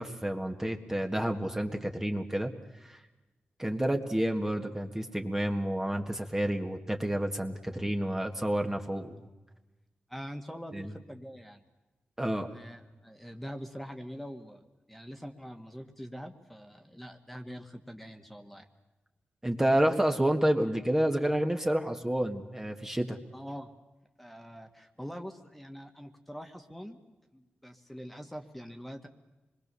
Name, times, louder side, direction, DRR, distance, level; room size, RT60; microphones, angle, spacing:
voice 1, 0.0-2.5 2.8-3.0 3.6-9.2 10.7-10.9 12.2-12.5 19.4-23.2, right 1 dB, 10° right, 3 dB, 1.8 m, -29 dB
voice 2, 10.1-11.6 12.4-14.6 14.9-18.7 23.3-23.7 24.2-27.0 27.3-29.1, equal, 5° left, 5 dB, 1.9 m, -44 dB
26.0 x 21.5 x 7.0 m, 1.1 s
cardioid pair, 75°, 4 cm